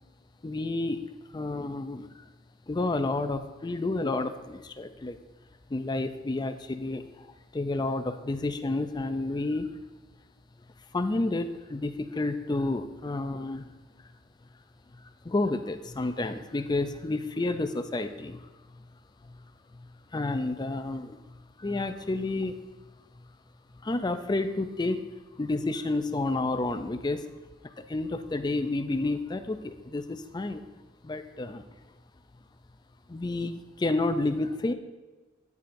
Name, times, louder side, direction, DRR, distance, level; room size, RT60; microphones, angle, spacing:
voice 1, 0.4-1.0 1.3-2.1 2.7-5.2 5.7-7.3 7.5-9.7 10.9-13.7 14.9-18.4 19.2-19.4 19.7-19.9 20.1-22.6 23.8-25.1 25.4-27.2 27.6-30.6 31.0-31.7 33.1-34.7, left 2 dB, 20° left, 9 dB, 0.4 m, -30 dB
9.6 x 8.4 x 2.6 m, 1.2 s
head